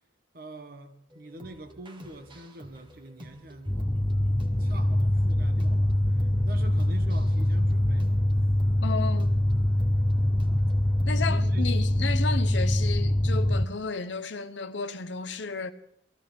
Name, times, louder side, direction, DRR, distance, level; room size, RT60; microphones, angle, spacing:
voice 1, 0.3-3.7 4.6-8.2 11.3-11.6 12.0-12.2, right 1 dB, 50° right, 1.3 m, -45 dB
sound 1, 1.1-11.4, equal, 25° right, 1.4 m, -50 dB
sound 2, 3.7-13.6, left 1 dB, 10° left, 0.5 m, -24 dB
voice 2, 8.8-9.5 11.0-15.7, left 4 dB, 80° left, 0.9 m, -33 dB
20.5 x 14.5 x 3.5 m
head